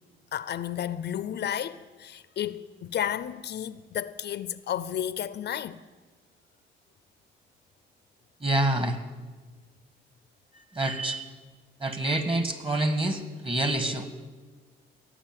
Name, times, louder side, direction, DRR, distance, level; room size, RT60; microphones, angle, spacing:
voice 1, 0.3-5.8, left 10 dB, 60° left, 0.6 m, -32 dB
voice 2, 8.4-9.0 10.7-11.3 11.8-14.1, right 1 dB, 25° right, 1.8 m, -27 dB
17.0 x 7.4 x 9.2 m
cardioid pair, 90°, 20 cm